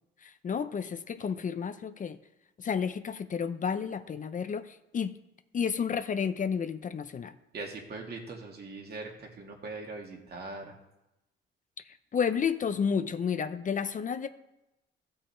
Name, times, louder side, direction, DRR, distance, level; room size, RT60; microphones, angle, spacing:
voice 1, 0.2-2.2 2.6-5.2 5.5-7.3 12.1-14.3, left 6 dB, 40° left, 11 dB, 0.6 m, -31 dB
voice 2, 7.5-10.8, right 3 dB, 55° right, 0 dB, 2.4 m, -41 dB
15.0 x 5.5 x 4.4 m, 0.92 s
cardioid pair, 90°, 20 cm